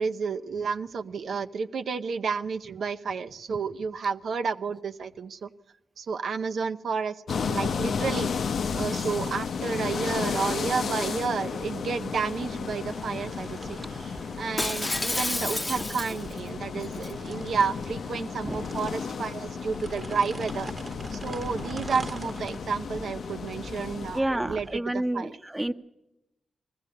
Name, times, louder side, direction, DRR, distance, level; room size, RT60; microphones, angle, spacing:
voice 1, 0.0-5.5 6.0-7.2 7.5-20.7 21.1-25.4, right 5 dB, 80° right, 8 dB, 0.7 m, -31 dB
sound 1, 7.3-24.2, left 6 dB, 75° left, 0.7 m, -33 dB
sound 2, 9.1-24.8, right 3 dB, 40° right, 1.1 m, -45 dB
Shatter, 14.6-16.4 16.8-17.1, left 2 dB, 25° left, 0.8 m, -30 dB
voice 2, 24.1-25.7, right 1 dB, 15° right, 7 dB, 1.0 m, -29 dB
20.0 x 15.0 x 8.6 m, 0.94 s
cardioid pair, 80°, 0 cm